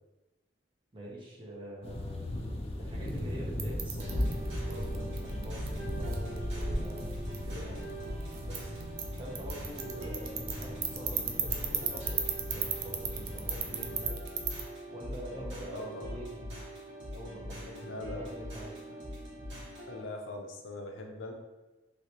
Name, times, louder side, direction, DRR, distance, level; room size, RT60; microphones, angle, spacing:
voice 1, 0.9-2.3 2.8-7.1 7.5-8.0 8.4-8.7 9.2-12.2 12.5-14.1 14.9-16.7 17.1-18.8, equal, 25° right, -5 dB, 0.8 m, -45 dB
sound 1, 1.8-14.1, left 1 dB, 30° left, 0.3 m, -38 dB
sound 2, 2.9-14.6, right 7 dB, 50° right, 0.4 m, -38 dB
sound 3, 4.0-20.0, equal, 80° right, 1.0 m, -42 dB
voice 2, 15.7-16.2 17.8-18.3 19.9-21.3, left 2 dB, 85° left, 2 dB, 0.5 m, -41 dB
3.1 x 2.8 x 2.9 m, 1.1 s
head